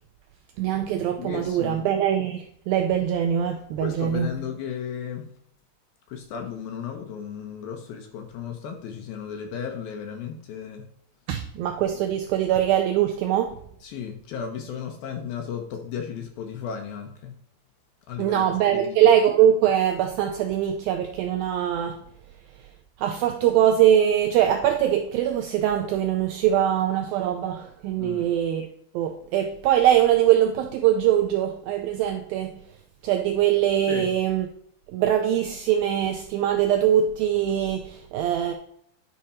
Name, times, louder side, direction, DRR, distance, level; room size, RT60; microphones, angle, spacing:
voice 1, 0.6-4.3 11.3-13.6 18.2-22.0 23.0-28.7 28.9-32.5 33.0-34.5 34.9-38.5, right 10 dB, 90° right, 2.1 m, -22 dB
voice 2, 1.2-1.8 3.8-5.3 6.1-10.9 13.8-17.3 18.1-19.1 28.0-28.3 33.9-34.1, left 7 dB, 70° left, 2.4 m, -35 dB
10.0 x 4.9 x 4.2 m
omnidirectional pair, 4.9 m